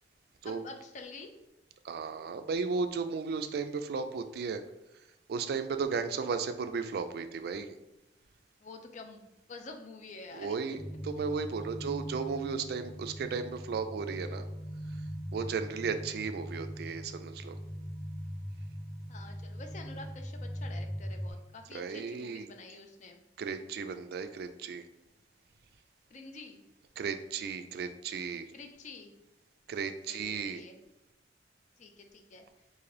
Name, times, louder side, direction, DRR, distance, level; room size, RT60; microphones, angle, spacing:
voice 1, 0.4-1.3 8.6-10.6 10.9-11.0 15.4-15.5 19.1-23.2 26.1-26.6 28.5-29.1 30.1-30.8 31.8-32.4, left 3 dB, 45° left, 5 dB, 0.4 m, -48 dB
voice 2, 1.8-4.6 5.3-7.7 10.3-10.8 11.0-14.5 15.3-17.6 21.7-22.5 23.4-24.9 27.0-28.5 29.7-30.6, right 5 dB, 60° right, 9 dB, 0.3 m, -35 dB
sound 1, 10.7-21.3, equal, 85° left, 1.1 m, -41 dB
3.7 x 2.5 x 3.2 m, 0.91 s
head